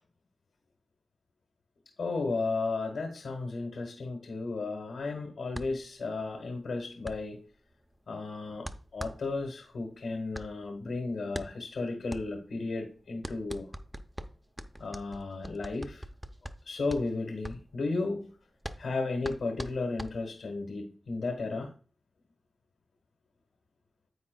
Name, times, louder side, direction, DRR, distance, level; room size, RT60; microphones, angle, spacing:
voice 1, 2.0-7.4 8.1-13.7 14.8-16.1 16.6-18.3 18.8-21.7, left 3 dB, 90° left, 3 dB, 1.2 m, -34 dB
sound 1, 5.5-20.6, equal, 10° right, 0.6 m, -44 dB
9.5 x 8.4 x 2.2 m, 0.41 s
wide cardioid pair, 120°, 0 cm